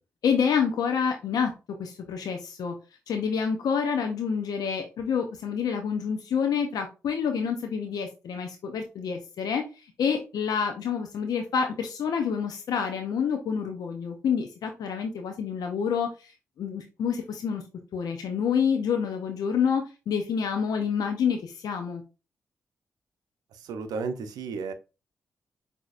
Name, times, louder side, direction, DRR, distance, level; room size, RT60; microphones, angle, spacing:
voice 1, 0.2-1.5 1.8-2.7 3.1-9.6 10.0-16.3 16.6-17.6 17.9-22.0, left 6 dB, 80° left, 4 dB, 0.6 m, -28 dB
voice 2, 23.6-24.7, right 4 dB, 90° right, 9 dB, 0.6 m, -33 dB
6.2 x 2.8 x 2.4 m, 0.29 s
supercardioid pair, 45°, 6 cm